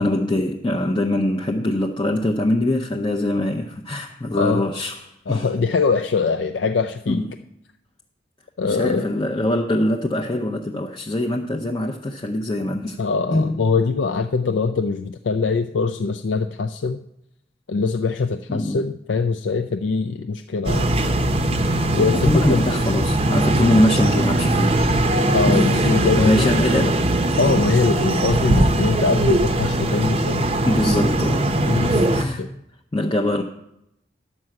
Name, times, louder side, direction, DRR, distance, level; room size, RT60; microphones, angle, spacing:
voice 1, 0.0-5.5 7.1-7.3 8.6-13.0 13.3-13.5 18.5-18.8 22.0-24.8 25.5-27.0 30.7-32.5 32.9-33.4, left 1 dB, 25° left, 0.6 m, -23 dB
voice 2, 4.3-4.6 5.3-7.2 8.6-9.1 13.0-17.0 17.7-20.9 21.9-22.6 25.3-26.5 27.4-30.5 31.7-32.1 32.4-32.5, left 4 dB, 75° left, 0.4 m, -22 dB
sound 1, 20.6-32.2, right 1 dB, 30° right, 0.6 m, -20 dB
11.0 x 5.7 x 7.6 m
head